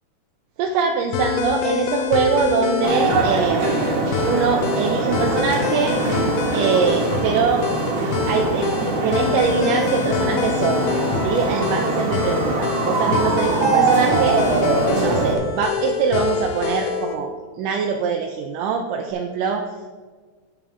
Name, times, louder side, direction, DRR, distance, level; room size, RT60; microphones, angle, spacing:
voice 1, 0.6-3.7 4.3-6.0 6.5-7.7 8.3-10.9 11.2-14.4 14.9-17.3 17.6-19.6, right 6 dB, 85° right, 3 dB, 2.2 m, -23 dB
sound 1, 1.1-17.2, left 6 dB, 80° left, 2.2 m, -25 dB
sound 2, 2.8-15.4, right 3 dB, 70° right, 2.4 m, -23 dB
8.7 x 8.5 x 3.6 m, 1.5 s
omnidirectional pair, 3.6 m